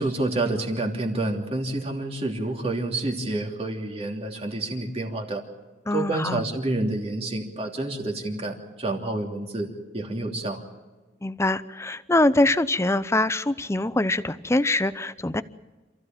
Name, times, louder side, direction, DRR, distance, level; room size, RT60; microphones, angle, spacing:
voice 1, 0.0-5.4 5.9-10.6, right 2 dB, 35° right, 2 dB, 3.1 m, -28 dB
voice 2, 5.9-6.4 11.2-15.4, left 2 dB, 15° left, 14 dB, 0.7 m, -23 dB
28.0 x 15.0 x 9.1 m, 1.3 s
head